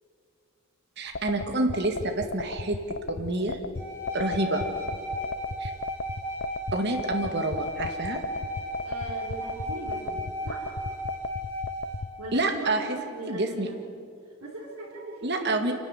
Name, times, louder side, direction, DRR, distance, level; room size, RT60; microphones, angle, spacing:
voice 1, 1.0-3.6 4.1-4.6 5.6-5.7 6.7-8.2 12.3-13.0 13.3-13.7 15.2-15.7, right 2 dB, 50° right, 5 dB, 2.1 m, -28 dB
sound 1, 1.1-12.1, left 3 dB, 50° left, 0.6 m, -34 dB
sound 2, 3.8-12.0, equal, 10° left, 7.3 m, -35 dB
voice 2, 8.8-10.7 12.2-13.8 14.4-15.7, right 2 dB, 90° right, -7 dB, 4.3 m, -38 dB
27.0 x 12.0 x 9.9 m, 2.4 s
head